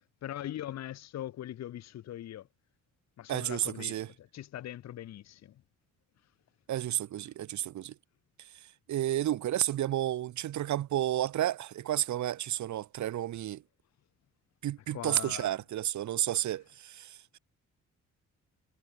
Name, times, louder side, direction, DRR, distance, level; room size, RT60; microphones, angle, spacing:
voice 1, 0.2-2.5 3.2-5.5 14.9-15.5, left 12 dB, 60° left, 0.9 m, -41 dB
voice 2, 3.3-4.1 6.7-7.9 8.9-13.6 14.6-17.2, right 12 dB, 70° right, 1.4 m, -31 dB
cardioid pair, 90°, 30 cm